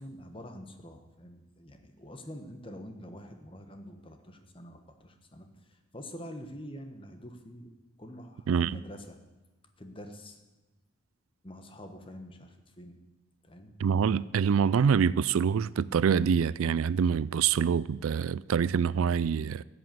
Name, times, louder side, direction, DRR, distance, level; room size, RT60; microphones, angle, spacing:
voice 1, 0.0-7.7 8.0-9.2 9.8-10.4 11.4-13.0 13.4-13.7, equal, 25° left, 1.2 m, -46 dB
voice 2, 13.8-19.6, right 7 dB, 80° right, 0.4 m, -25 dB
13.5 x 8.2 x 7.6 m
head